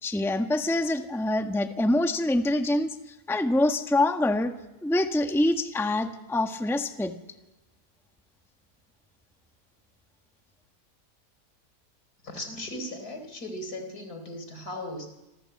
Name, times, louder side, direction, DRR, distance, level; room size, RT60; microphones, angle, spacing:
voice 1, 0.0-3.0 3.3-4.5 4.8-7.1, left 1 dB, ahead, 6 dB, 1.4 m, -25 dB
voice 2, 12.2-15.1, left 1 dB, 70° left, 7 dB, 4.7 m, -37 dB
27.5 x 27.0 x 8.0 m, 1.0 s
omnidirectional pair, 1.7 m